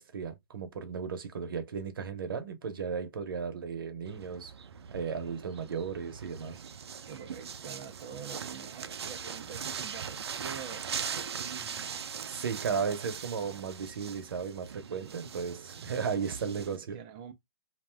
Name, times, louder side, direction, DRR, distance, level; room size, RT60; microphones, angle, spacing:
voice 1, 0.0-4.5 4.9-6.6 12.3-17.0, right 6 dB, 60° right, 0.8 m, -35 dB
sound 1, 4.1-16.8, right 7 dB, 85° right, 0.5 m, -41 dB
voice 2, 7.1-12.4 14.9-15.2 16.9-17.3, right 7 dB, 20° right, 0.4 m, -46 dB
2.5 x 2.2 x 3.2 m
hypercardioid pair, 165°, 13 cm